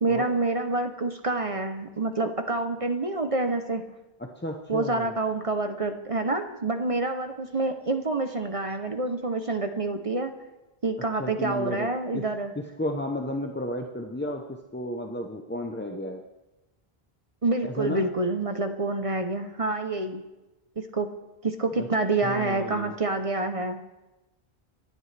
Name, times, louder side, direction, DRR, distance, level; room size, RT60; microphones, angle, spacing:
voice 1, 0.0-3.8 4.7-10.3 10.8-12.5 17.4-20.2 20.8-21.1 21.4-23.8, right 2 dB, 35° right, 6 dB, 0.8 m, -27 dB
voice 2, 4.2-5.1 11.2-11.9 12.1-12.2 12.8-16.2 17.6-18.1 21.7-21.9 22.2-22.9, left 1 dB, 10° left, 2 dB, 0.7 m, -33 dB
27.5 x 11.0 x 3.3 m, 1.0 s
omnidirectional pair, 1.0 m